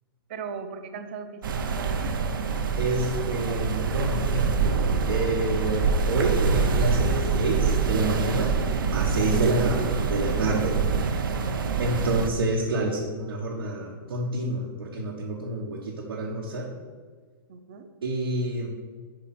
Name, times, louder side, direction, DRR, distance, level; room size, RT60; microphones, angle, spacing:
voice 1, 0.3-2.2 17.5-17.9, right 5 dB, 25° right, 8 dB, 0.4 m, -38 dB
sound 1, 1.4-12.3, right 5 dB, 60° right, 0.7 m, -25 dB
voice 2, 2.8-4.5 5.1-8.5 8.9-10.8 11.1-11.3 11.8-16.7 18.0-18.7, right 2 dB, 90° right, -3 dB, 1.1 m, -28 dB
5.0 x 4.9 x 5.8 m, 1.5 s
hypercardioid pair, 175°, 12 cm